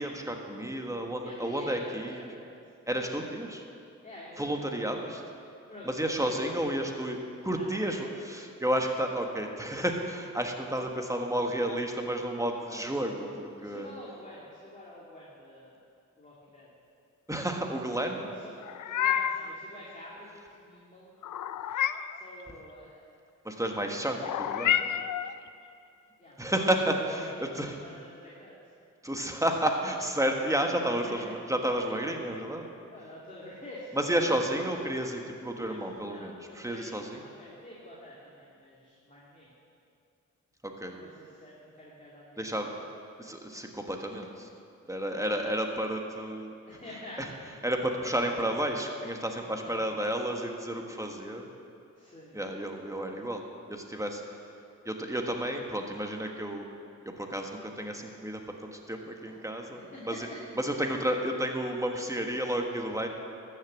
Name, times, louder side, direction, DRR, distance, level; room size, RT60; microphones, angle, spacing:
voice 1, 0.0-2.3 2.9-3.7 4.4-5.2 5.8-7.2 7.4-13.9 17.3-18.3 23.4-24.8 26.4-27.7 29.0-32.7 34.0-37.2 40.6-41.0 42.4-42.7 43.2-44.5 44.9-46.5 47.6-51.5 52.3-53.4 53.7-54.4 54.8-56.7 57.0-60.2 60.6-63.1, right 1 dB, 10° right, 2 dB, 1.5 m, -31 dB
voice 2, 1.2-2.5 4.0-5.0 5.6-6.7 7.5-8.3 12.7-13.0 13.6-15.8 16.2-16.7 18.4-18.6 18.9-21.1 21.6-23.1 23.4-24.2 26.2-26.5 27.4-28.7 31.0-31.3 32.9-34.3 35.7-35.8 36.0-39.5 40.8-42.7 46.7-47.3 49.4-50.1 51.9-52.4 59.3-59.4 59.9-60.2, left 1 dB, 25° left, -7 dB, 2.6 m, -48 dB
Meow, 18.6-19.5 21.2-22.2 24.2-25.3, left 10 dB, 85° left, 0.5 m, -29 dB
13.0 x 6.7 x 7.4 m, 2.5 s
cardioid pair, 55°, 30 cm